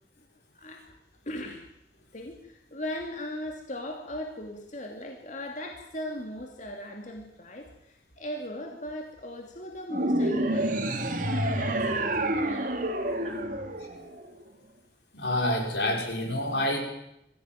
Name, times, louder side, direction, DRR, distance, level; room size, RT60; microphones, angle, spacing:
voice 1, 0.5-1.0 1.3-1.7 2.1-12.7 13.1-13.6, left 1 dB, 45° left, 2 dB, 2.9 m, -39 dB
sound 1, 9.9-14.4, right 1 dB, 50° right, 2.6 m, -28 dB
voice 2, 15.1-16.8, left 1 dB, 70° left, 2 dB, 6.0 m, -27 dB
23.0 x 16.0 x 9.4 m, 0.80 s
head